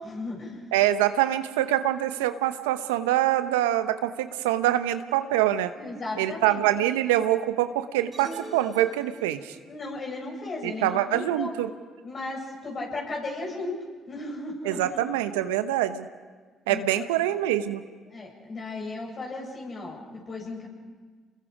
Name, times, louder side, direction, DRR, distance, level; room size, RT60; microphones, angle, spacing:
voice 1, 0.0-0.6 5.8-6.6 9.7-11.5 12.0-13.8 14.1-14.9 16.7-17.0 18.1-20.7, left 2 dB, 45° left, -1 dB, 7.4 m, -35 dB
voice 2, 0.7-5.7 6.2-9.6 10.6-11.7 14.6-16.1 16.7-17.8, right 13 dB, 85° right, 11 dB, 0.9 m, -25 dB
sound 1, 8.1-9.7, right 2 dB, 35° right, 3.7 m, -43 dB
29.0 x 21.5 x 5.0 m, 1.5 s
hypercardioid pair, 55°, 0 cm